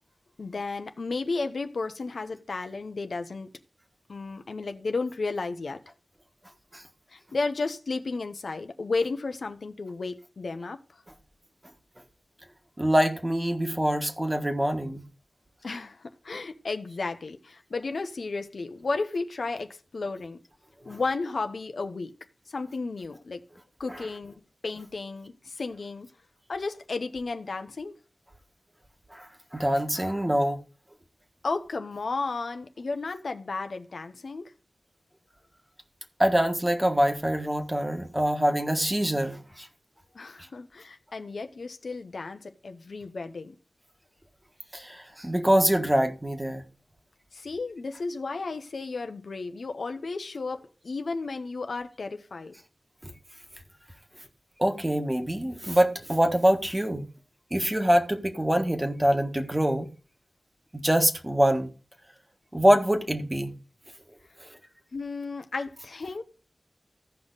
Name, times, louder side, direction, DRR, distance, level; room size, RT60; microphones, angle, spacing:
voice 1, 0.4-3.5 4.1-5.8 7.1-10.8 15.6-20.4 20.9-22.1 22.5-23.4 23.8-24.3 24.6-26.1 26.5-27.9 31.4-34.5 40.1-43.6 47.3-52.5 64.9-66.2, left 3 dB, 70° left, 1.0 m, -33 dB
voice 2, 12.8-15.0 20.9-21.0 29.1-29.3 29.5-30.6 36.2-39.7 44.7-46.6 53.0-53.1 54.6-57.1 57.5-59.9 60.7-61.7 62.5-63.5 64.4-64.5, equal, 15° right, 1.5 m, -24 dB
15.0 x 5.4 x 4.0 m
wide cardioid pair, 90°, 0 cm